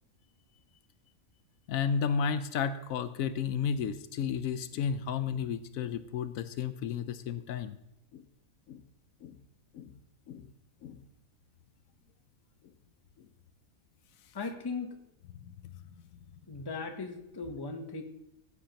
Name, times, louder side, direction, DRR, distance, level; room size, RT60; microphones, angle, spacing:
voice 1, 1.7-7.8 8.1-8.2 8.7-8.8 9.2-9.4 9.7-9.9 10.3-10.5 10.8-11.0 15.9-16.0, left 7 dB, 80° left, 13 dB, 1.0 m, -32 dB
voice 2, 14.3-15.0 16.5-18.0, left 4 dB, 20° left, 6 dB, 0.8 m, -38 dB
15.0 x 8.5 x 2.9 m, 0.84 s
omnidirectional pair, 1.5 m